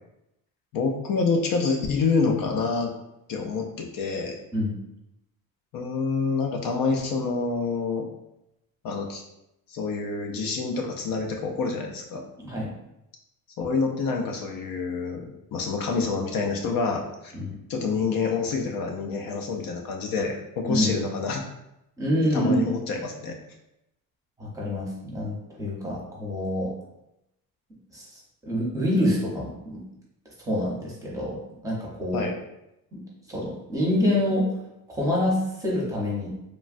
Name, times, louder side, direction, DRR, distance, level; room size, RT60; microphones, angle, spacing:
voice 1, 0.7-2.9 3.3-4.4 5.7-8.1 8.8-9.2 9.7-12.2 13.6-17.3 17.7-21.5 22.3-23.4 32.1-32.3, left 4 dB, 65° left, 2 dB, 0.5 m, -27 dB
voice 2, 12.4-12.7 17.3-17.6 20.7-20.9 22.0-22.6 24.4-26.7 27.9-28.2 28.5-29.8 30.4-32.3 32.9-33.0 33.3-34.5 34.9-36.3, left 1 dB, 10° right, -5 dB, 0.7 m, -26 dB
3.1 x 2.2 x 2.5 m, 0.86 s
cardioid pair, 135°, 36 cm